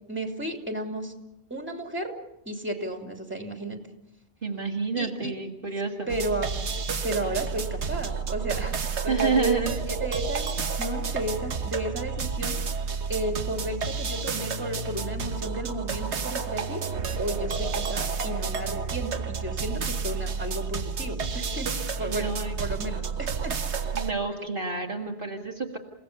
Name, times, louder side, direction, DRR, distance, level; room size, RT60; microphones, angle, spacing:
voice 1, 0.1-1.1 1.5-2.2 2.4-3.8 5.0-5.3 6.1-6.5 7.0-12.6 13.1-16.9 17.2-23.5, right 1 dB, 10° right, 3 dB, 3.0 m, -33 dB
voice 2, 4.4-6.1 9.1-9.7 22.1-22.5 23.9-25.8, right 4 dB, 45° right, 0 dB, 2.2 m, -29 dB
sound 1, 6.1-24.1, right 5 dB, 70° right, 1.4 m, -30 dB
30.0 x 17.0 x 6.8 m, 0.86 s
omnidirectional pair, 1.2 m